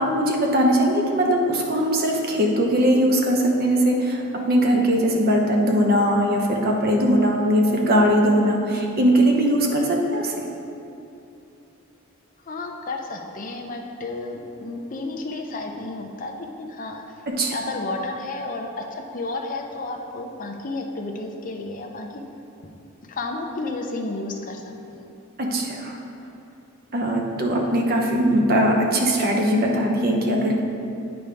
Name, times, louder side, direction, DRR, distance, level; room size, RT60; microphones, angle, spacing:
voice 1, 0.0-10.3 17.3-17.5 25.4-26.0 26.9-30.6, equal, 45° right, 0 dB, 0.8 m, -20 dB
voice 2, 12.5-17.0 17.5-22.1 23.1-25.0, left 2 dB, 35° left, 2 dB, 0.5 m, -32 dB
8.9 x 5.1 x 3.4 m, 2.7 s
head